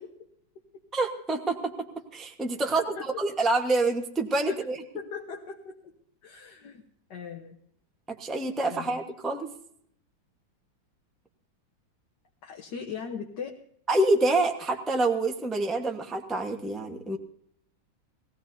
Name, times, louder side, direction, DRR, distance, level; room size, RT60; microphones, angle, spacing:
voice 1, 0.9-1.7 2.1-4.8 8.2-9.5 13.9-17.2, right 2 dB, ahead, 2 dB, 0.9 m, -27 dB
voice 2, 2.7-3.1 4.5-4.6 4.9-5.8 6.2-6.8 7.1-7.6 8.7-9.0 12.4-13.5, left 6 dB, 60° left, 1 dB, 1.7 m, -39 dB
21.0 x 16.5 x 2.7 m, 0.67 s
omnidirectional pair, 2.2 m